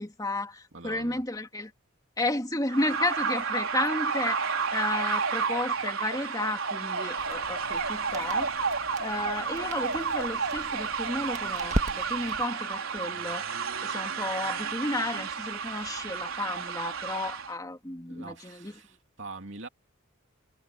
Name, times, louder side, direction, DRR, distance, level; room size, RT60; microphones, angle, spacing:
voice 1, 0.0-1.7 2.2-4.4 4.7-8.5 9.0-13.5 13.8-18.7, left 2 dB, 15° left, 2.4 m, -32 dB
voice 2, 0.7-1.2 18.1-19.7, right 3 dB, 60° right, 3.0 m, -43 dB
sound 1, 2.7-17.5, right 5 dB, 80° right, 4.2 m, -31 dB
Crackle, 7.2-12.5, right 1 dB, 35° right, 1.7 m, -38 dB
head